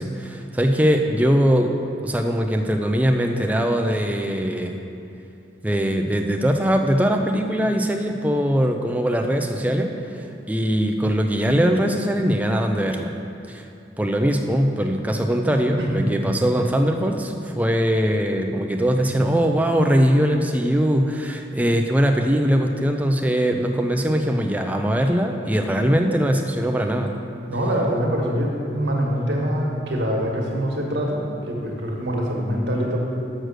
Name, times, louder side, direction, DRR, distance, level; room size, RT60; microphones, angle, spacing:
voice 1, 0.0-1.7 2.0-4.8 5.6-13.1 13.5-13.6 14.0-27.1, equal, 10° right, 3 dB, 0.4 m, -21 dB
voice 2, 15.8-16.1 27.5-33.0, equal, 85° right, -1 dB, 1.4 m, -24 dB
6.3 x 6.3 x 6.5 m, 2.6 s
head